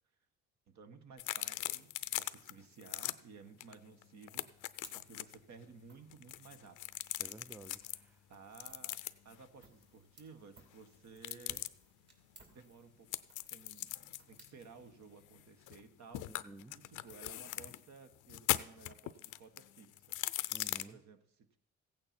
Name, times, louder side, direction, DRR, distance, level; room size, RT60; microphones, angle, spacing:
voice 1, 0.7-6.8 8.3-11.7 12.4-13.1 13.5-16.4 16.7-20.2 20.7-21.6, right 5 dB, 65° right, 1.4 m, -56 dB
sound 1, 1.2-2.5 2.8-3.1 3.6-3.7 4.0-5.3 6.1-8.0 8.5-9.3 11.2-11.7 13.1-15.8 16.1-17.8 18.2-20.8, left 16 dB, 90° left, 0.5 m, -39 dB
sound 2, 4.4-16.1, right 3 dB, 35° right, 2.8 m, -64 dB
voice 2, 7.2-8.2 16.3-16.8 20.5-21.0, right 2 dB, 5° right, 0.4 m, -53 dB
15.5 x 8.8 x 4.3 m
cardioid pair, 90°, 30 cm